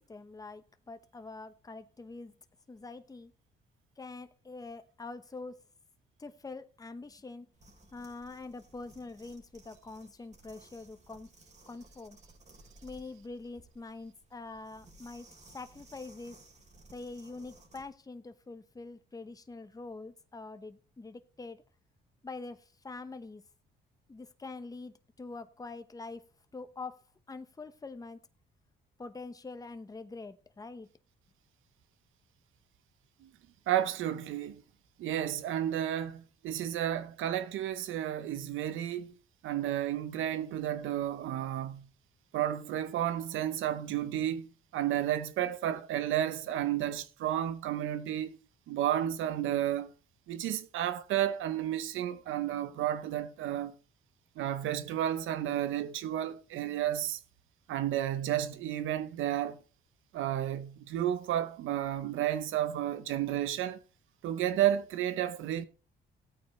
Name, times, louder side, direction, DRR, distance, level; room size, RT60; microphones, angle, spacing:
voice 1, 0.0-2.4 2.7-3.3 4.0-5.6 6.2-7.5 7.9-11.3 11.7-12.2 12.8-15.3 15.5-16.4 16.9-21.6 22.2-23.4 24.1-26.2 26.5-28.2 29.0-30.9, left 3 dB, 20° left, 0.9 m, -45 dB
sound 1, 7.5-17.9, right 2 dB, 35° right, 3.7 m, -58 dB
voice 2, 33.7-34.6 35.0-39.1 39.4-41.9 42.3-44.5 44.7-48.4 48.7-49.9 50.3-53.7 54.4-57.2 57.7-59.6 60.1-63.8 64.2-65.7, right 11 dB, 85° right, 0.9 m, -32 dB
16.5 x 8.7 x 3.2 m
cardioid pair, 90°, 20 cm